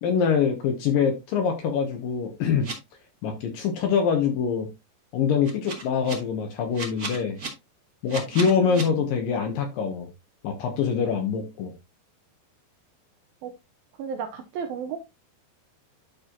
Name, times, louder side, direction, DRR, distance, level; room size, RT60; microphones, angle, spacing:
voice 1, 0.0-2.7 3.2-4.7 5.1-7.4 8.0-10.1 10.4-11.7, left 6 dB, 70° left, 2.3 m, -24 dB
sound 1, 2.6-2.7 5.4-6.1 6.7-7.5 8.1-8.8, right 4 dB, 40° right, 1.1 m, -34 dB
voice 2, 8.3-9.0 13.4-13.5 14.0-15.0, right 7 dB, 75° right, 2.2 m, -34 dB
12.0 x 4.2 x 2.9 m
omnidirectional pair, 5.0 m